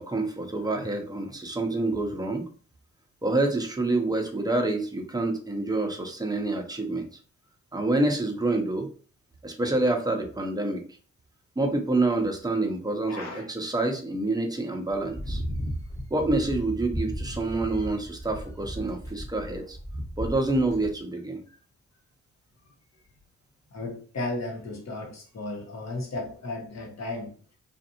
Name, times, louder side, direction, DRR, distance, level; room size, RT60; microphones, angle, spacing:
voice 1, 0.0-2.4 3.2-7.1 7.7-8.9 9.4-10.8 11.6-15.4 16.1-19.8 20.2-21.4, right 2 dB, 10° right, 0.8 m, -27 dB
voice 2, 13.1-13.5 21.5-21.6 23.7-27.4, left 2 dB, 55° left, 1.2 m, -35 dB
sound 1, 14.9-20.9, equal, 10° left, 1.0 m, -35 dB
2.5 x 2.5 x 2.8 m
supercardioid pair, 40°, 32 cm